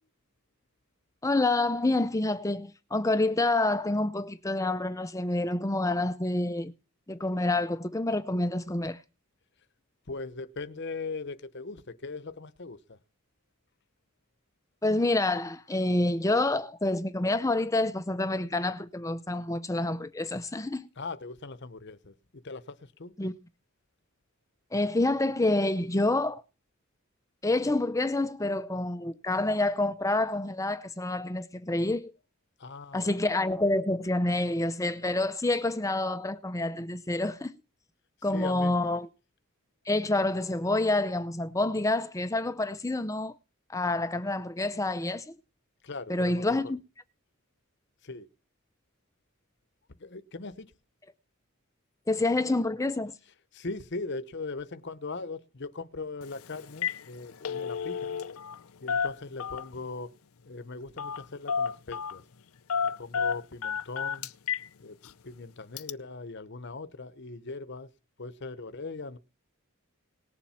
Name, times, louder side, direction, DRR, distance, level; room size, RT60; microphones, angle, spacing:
voice 1, 1.2-6.7 7.1-9.0 14.8-20.9 23.2-23.3 24.7-26.4 27.4-32.1 32.9-37.5 38.2-39.1 39.9-43.3 43.7-45.4 46.1-46.8 52.1-53.1, left 2 dB, 15° left, 0.6 m, -28 dB
voice 2, 10.1-13.0 21.0-23.1 32.6-33.2 38.3-38.7 45.8-46.6 48.0-48.3 50.0-50.7 53.5-58.2 58.8-60.1 60.5-62.2 62.8-64.3 64.8-65.0 65.2-67.9 68.2-69.2, left 3 dB, 55° left, 0.9 m, -40 dB
Telephone, 56.2-56.4 56.7-57.0 57.3-58.6 58.9-59.8 61.0-61.2 61.5-62.2 62.7-64.7 65.1-65.2 65.8-65.9, left 6 dB, 85° left, 0.6 m, -31 dB
19.0 x 7.3 x 5.7 m
head